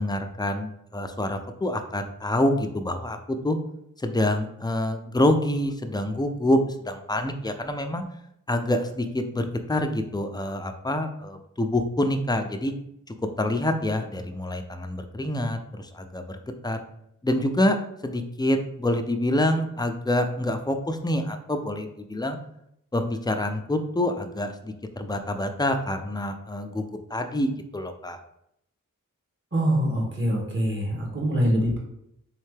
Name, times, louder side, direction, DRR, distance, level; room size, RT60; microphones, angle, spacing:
voice 1, 0.0-3.6 4.0-8.0 8.5-12.7 13.4-16.4 16.6-16.8 17.2-17.8 18.0-22.4 22.9-28.2, left 1 dB, 15° left, 6 dB, 0.4 m, -26 dB
voice 2, 29.5-31.8, equal, 35° right, -3 dB, 1.4 m, -24 dB
3.6 x 3.3 x 3.3 m, 0.76 s
wide cardioid pair, 80°, 33 cm